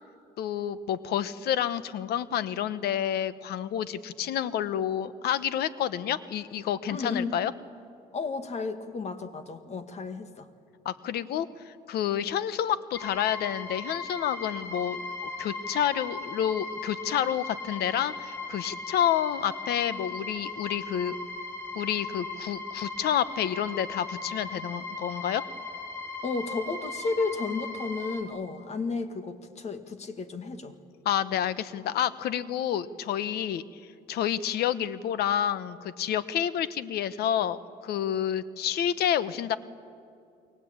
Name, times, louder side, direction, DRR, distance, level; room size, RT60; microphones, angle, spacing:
voice 1, 0.4-7.5 10.8-21.2 21.7-25.4 31.0-33.6 34.1-39.6, left 10 dB, 70° left, 15 dB, 1.1 m, -29 dB
voice 2, 6.8-7.4 8.1-10.5 26.2-30.7, left 4 dB, 40° left, 8 dB, 2.1 m, -33 dB
sound 1, 12.9-28.2, left 3 dB, 15° left, 3.4 m, -38 dB
29.0 x 22.0 x 8.8 m, 2.4 s
cardioid pair, 110°, 17 cm